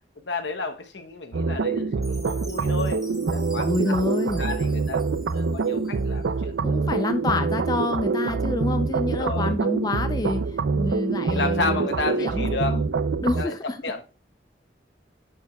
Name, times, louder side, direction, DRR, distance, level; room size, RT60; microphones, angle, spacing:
voice 1, 0.2-4.0 4.4-6.5 9.1-9.6 11.3-12.8 13.2-13.5 13.8-14.0, left 3 dB, 80° left, 1.0 m, -32 dB
sound 1, 1.3-13.4, right 4 dB, 80° right, 0.5 m, -25 dB
Chime, 2.0-6.3, right 1 dB, ahead, 1.1 m, -47 dB
voice 2, 3.5-4.4 6.6-11.9 12.2-12.8 13.2-13.8, left 2 dB, 20° left, 0.4 m, -28 dB
10.5 x 4.7 x 2.3 m
head